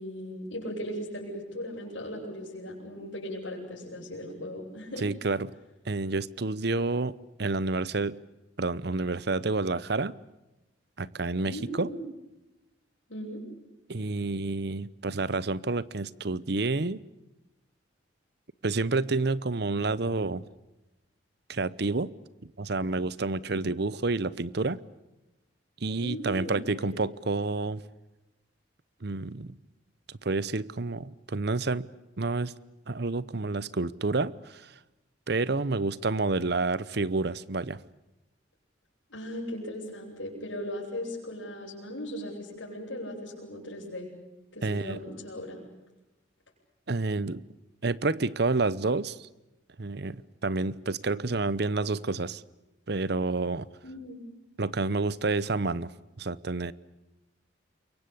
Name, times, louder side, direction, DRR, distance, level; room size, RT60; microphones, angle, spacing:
voice 1, 0.0-5.1 11.5-12.0 13.1-13.5 26.0-27.2 39.1-44.1 44.5-45.6 53.8-54.3, equal, 90° left, -8 dB, 7.8 m, -38 dB
voice 2, 5.0-5.5 5.8-8.2 8.6-10.1 11.0-11.9 13.9-17.0 18.6-20.4 21.5-22.1 22.6-24.8 25.8-27.8 29.0-29.5 30.1-31.9 32.2-32.5 32.9-34.7 35.3-37.8 44.6-45.0 46.9-47.4 47.8-49.3 49.8-52.4 52.9-53.7 54.6-55.9 56.2-56.7, right 3 dB, 60° right, 19 dB, 0.9 m, -29 dB
28.0 x 23.5 x 8.5 m, 1.0 s
head